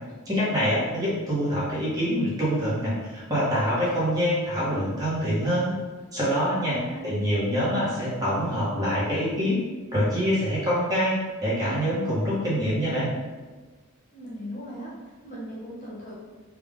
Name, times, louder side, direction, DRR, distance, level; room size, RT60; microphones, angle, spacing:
voice 1, 0.2-5.7 6.1-9.6 9.9-13.1, equal, 15° right, -9 dB, 1.2 m, -25 dB
voice 2, 6.6-7.1 14.1-16.1, equal, 35° left, -6 dB, 0.7 m, -38 dB
3.6 x 2.4 x 3.6 m, 1.3 s
head